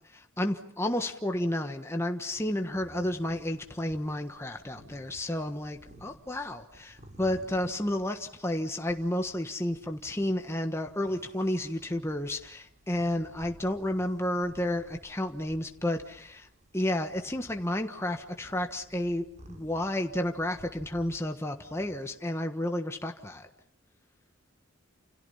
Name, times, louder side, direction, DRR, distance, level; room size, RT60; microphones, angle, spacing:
voice 1, 0.1-16.5 16.7-23.5, left 1 dB, 15° left, 5 dB, 1.4 m, -31 dB
sound 1, 2.3-22.0, right 1 dB, 35° right, 5.5 m, -55 dB
30.0 x 28.5 x 5.7 m, 0.67 s
head